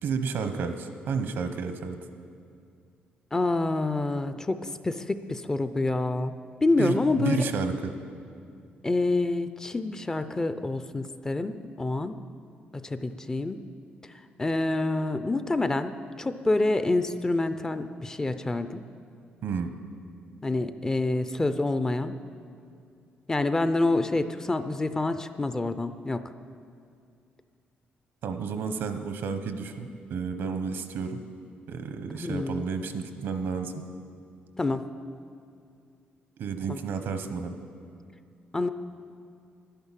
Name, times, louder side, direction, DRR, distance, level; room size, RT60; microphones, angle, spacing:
voice 1, 0.0-2.0 6.8-7.9 19.4-19.7 28.2-31.2 31.7-33.7 36.4-37.5, right 5 dB, 75° right, 8 dB, 0.9 m, -31 dB
voice 2, 3.3-6.4 6.6-7.5 8.8-12.2 12.7-13.6 14.4-15.9 16.2-18.8 20.4-22.1 23.3-26.2 32.1-32.7 34.6-34.9 36.7-36.8 38.5-38.7, left 2 dB, 15° left, 10 dB, 0.5 m, -27 dB
11.0 x 10.0 x 7.4 m, 2.4 s
cardioid pair, 130°, 4 cm